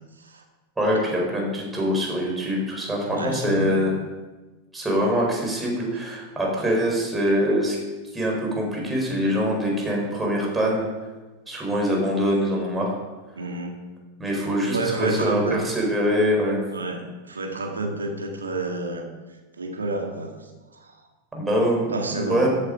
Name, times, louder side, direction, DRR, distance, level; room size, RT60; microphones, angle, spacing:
voice 1, 0.8-4.0 4.7-7.8 8.1-10.9 11.5-13.0 14.2-16.6 21.3-22.5, equal, 10° right, -1 dB, 4.2 m, -24 dB
voice 2, 3.1-3.9 13.4-13.8 14.7-15.6 16.7-19.1 19.6-21.0 21.9-22.5, right 2 dB, 75° right, 3 dB, 1.9 m, -30 dB
14.0 x 8.0 x 5.0 m, 1.2 s
figure-of-eight pair, 90°, 0 cm